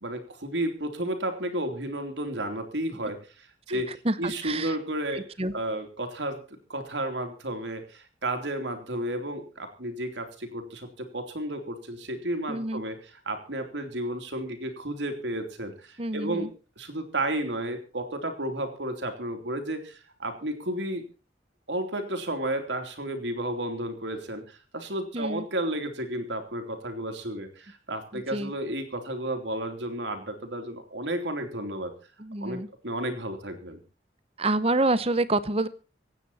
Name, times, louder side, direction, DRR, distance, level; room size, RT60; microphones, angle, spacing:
voice 1, 0.0-3.9 4.2-16.5 16.8-21.0 21.7-31.9 32.4-32.6 32.8-33.8, right 1 dB, 80° right, 6 dB, 3.2 m, -32 dB
voice 2, 3.7-4.7 5.1-5.5 12.5-12.8 16.0-16.5 25.1-25.4 28.1-28.5 32.2-32.7 34.4-35.7, right 2 dB, 35° right, 15 dB, 0.9 m, -28 dB
25.0 x 9.3 x 4.3 m, 0.35 s
head